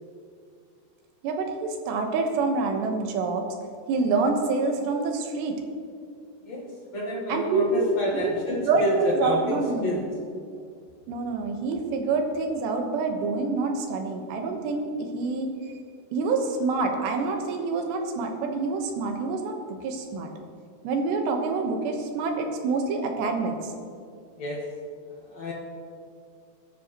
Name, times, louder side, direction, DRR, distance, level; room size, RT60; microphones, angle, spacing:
voice 1, 1.2-3.5 3.9-5.6 7.3-7.9 8.1-10.0 11.1-15.5 16.1-20.3 20.8-23.7, right 4 dB, 85° right, 3 dB, 3.4 m, -27 dB
voice 2, 6.9-9.4 9.8-10.0 24.4-24.6 25.3-25.5, equal, 60° left, -3 dB, 1.9 m, -28 dB
20.5 x 10.5 x 3.0 m, 2.3 s
omnidirectional pair, 4.8 m